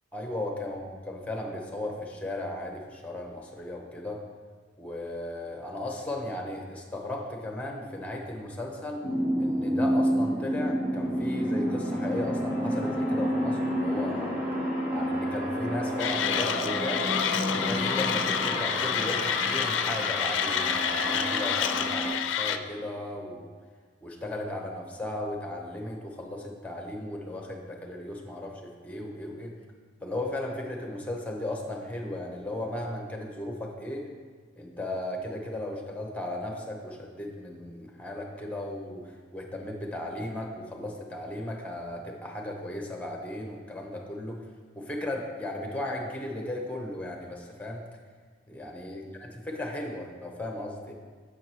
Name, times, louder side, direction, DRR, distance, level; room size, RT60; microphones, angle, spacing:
voice 1, 0.1-4.2 4.8-9.0 9.4-14.4 14.9-17.1 17.5-23.5 24.0-29.5 30.0-34.1 34.6-44.4 44.8-47.8 48.5-49.0 49.5-50.9, left 1 dB, 10° left, 1 dB, 0.8 m, -36 dB
sound 1, 9.0-22.1, equal, 10° right, 1.2 m, -29 dB
Mechanisms, 16.0-22.6, left 9 dB, 90° left, 0.4 m, -29 dB
6.8 x 4.7 x 4.5 m, 1.5 s
head